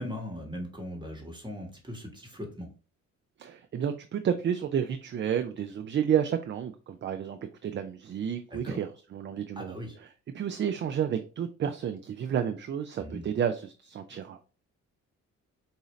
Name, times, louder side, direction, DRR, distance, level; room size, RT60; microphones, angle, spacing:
voice 1, 0.0-2.7 8.5-8.8 9.5-10.0 13.0-13.3, left 1 dB, 15° right, 1.5 m, -39 dB
voice 2, 3.4-14.5, right 8 dB, 40° right, 0.4 m, -31 dB
4.7 x 2.7 x 3.1 m
cardioid pair, 90°, 30 cm